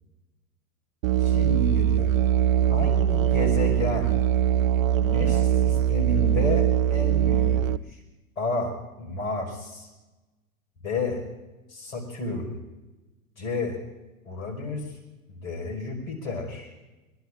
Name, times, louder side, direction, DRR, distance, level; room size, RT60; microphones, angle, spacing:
Musical instrument, 1.0-7.8, right 10 dB, 65° right, 0.6 m, -22 dB
voice 1, 1.2-2.1 2.7-4.2 5.0-8.0 8.4-9.9 10.8-11.2 11.7-12.6 13.4-13.8 14.2-15.0 15.3-16.7, left 2 dB, 70° left, 4 dB, 5.4 m, -31 dB
24.5 x 21.5 x 2.6 m, 1.1 s
figure-of-eight pair, 90°, 43 cm